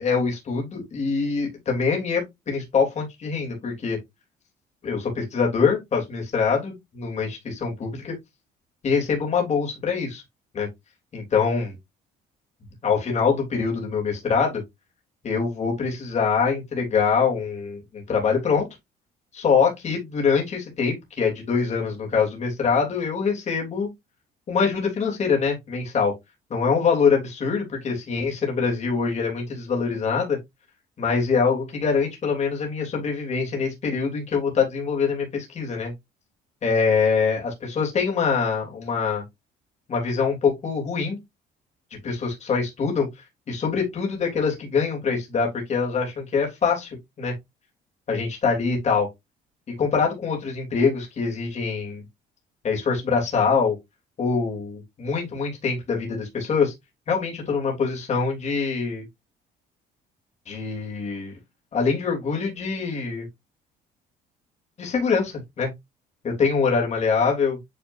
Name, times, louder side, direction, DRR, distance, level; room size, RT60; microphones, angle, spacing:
voice 1, 0.0-4.0 4.8-8.1 8.8-10.2 10.5-10.7 11.1-11.7 12.8-14.6 15.2-18.7 19.3-23.9 24.5-26.1 26.5-30.4 31.0-35.9 36.6-39.2 39.9-41.2 42.0-43.1 43.5-47.3 48.1-49.1 49.8-52.0 52.6-53.7 54.2-56.7 57.1-59.0 60.5-61.3 61.7-63.3 64.8-65.7 66.2-67.6, left 5 dB, 40° left, 3.3 m, -24 dB
9.1 x 4.3 x 2.7 m
cardioid pair, 110°, 17 cm